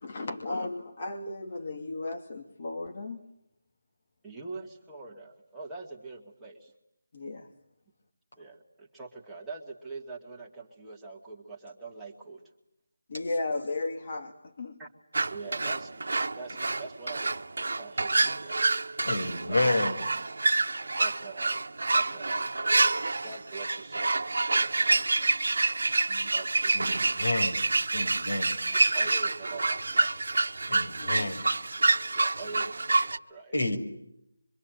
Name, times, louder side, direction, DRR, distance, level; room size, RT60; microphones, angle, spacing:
voice 1, 0.0-3.3 7.1-7.5 13.1-14.8 19.0-19.3 24.9-25.0 27.9-28.2 31.0-31.3, left 2 dB, 40° left, 2.3 m, -35 dB
voice 2, 4.2-6.7 8.4-12.4 14.8-14.9 15.3-18.9 19.5-20.0 20.7-21.6 21.9-22.5 23.2-25.0 26.3-27.3 28.9-30.4 32.1-33.5, right 3 dB, 5° right, 2.3 m, -44 dB
sound 1, 15.1-33.2, right 3 dB, 65° right, 1.2 m, -27 dB
voice 3, 19.1-20.0 26.1-26.3 26.7-27.6 27.9-28.6 30.7-31.5 33.5-33.8, left 2 dB, 75° left, 6.1 m, -30 dB
26.0 x 24.5 x 9.3 m
figure-of-eight pair, 165°, 0 cm